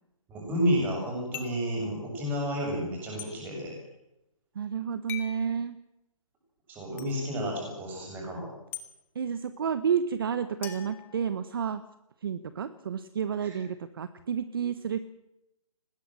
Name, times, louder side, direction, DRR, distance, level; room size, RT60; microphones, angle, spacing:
voice 1, 0.3-3.8 6.7-8.5 13.4-13.6, equal, 10° right, 0 dB, 7.3 m, -31 dB
sound 1, 1.3-1.7 3.2-3.3 5.1-5.4 7.0-7.1 8.7-8.9 10.6-11.7, left 11 dB, 10° left, 1.5 m, -41 dB
voice 2, 4.5-5.8 9.1-11.8 12.2-15.0, right 7 dB, 40° right, 12 dB, 1.2 m, -30 dB
22.0 x 20.0 x 7.6 m, 0.86 s
hypercardioid pair, 170°, 18 cm